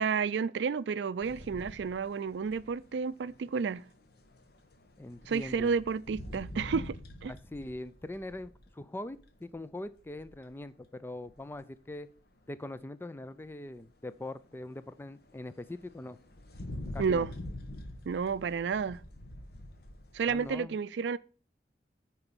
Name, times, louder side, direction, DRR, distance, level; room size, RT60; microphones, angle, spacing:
voice 1, 0.0-3.8 5.3-7.0 7.2-7.3 17.0-17.3 18.1-19.0 20.1-21.2, right 5 dB, 80° right, 0.4 m, -31 dB
sound 1, 1.2-8.8 9.1-10.6 11.3-11.6 11.9-12.0 12.2-12.3 13.6-13.7 14.1-20.6, left 1 dB, 65° left, 1.2 m, -46 dB
voice 2, 5.0-5.7 7.3-12.1 12.5-16.2 16.9-17.3 20.3-20.8, left 1 dB, 15° left, 0.4 m, -42 dB
9.9 x 4.4 x 7.0 m
head